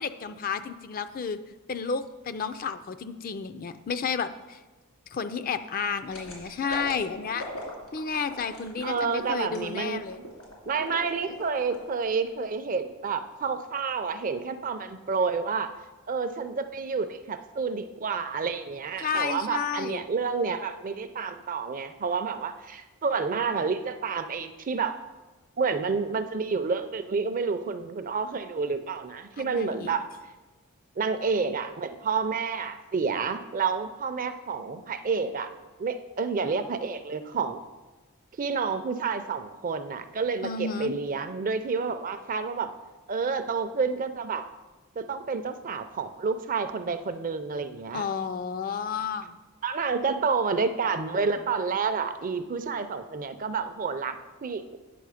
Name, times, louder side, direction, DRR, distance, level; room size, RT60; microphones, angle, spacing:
voice 1, 0.0-1.4 1.7-4.6 5.1-7.4 7.9-10.2 19.0-20.0 29.4-30.0 40.4-40.9 47.9-49.4, left 6 dB, 40° left, 11 dB, 0.4 m, -31 dB
sound 1, 6.1-11.9 12.3-12.4, left 1 dB, 85° left, 2.7 m, -40 dB
voice 2, 8.8-10.0 10.7-15.7 16.1-25.0 25.6-30.1 31.0-35.5 35.8-37.6 38.4-42.7 43.1-44.4 45.0-48.1 49.6-54.8, right 5 dB, 40° right, 10 dB, 0.5 m, -29 dB
9.3 x 6.2 x 4.9 m, 1.2 s
head